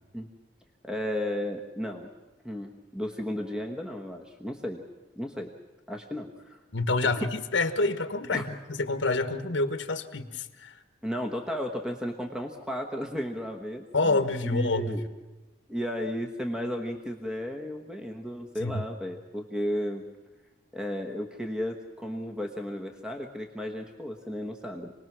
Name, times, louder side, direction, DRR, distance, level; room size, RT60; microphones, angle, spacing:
voice 1, 0.8-2.1 2.4-4.8 5.2-5.5 5.9-6.6 7.1-7.3 8.3-8.4 11.0-14.2 14.5-15.0 15.7-20.1 20.7-24.9, equal, 5° right, 3 dB, 1.2 m, -34 dB
voice 2, 6.7-10.8 13.9-15.0 18.6-18.8, left 3 dB, 75° left, 8 dB, 1.3 m, -28 dB
27.5 x 19.5 x 6.1 m, 1.1 s
head